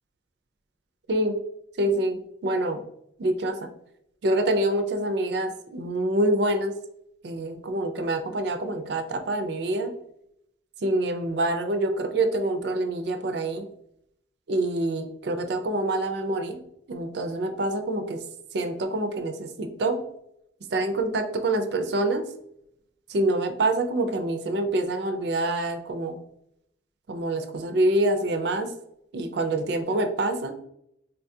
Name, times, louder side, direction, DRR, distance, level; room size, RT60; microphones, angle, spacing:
voice 1, 1.8-2.8 3.2-3.7 4.2-6.7 7.2-9.9 10.8-13.7 14.5-16.6 16.9-18.2 18.5-20.0 20.7-22.2 23.1-26.2 27.1-28.7 29.1-30.5, right 1 dB, 60° right, 6 dB, 0.4 m, -26 dB
3.8 x 2.3 x 2.6 m, 0.75 s
head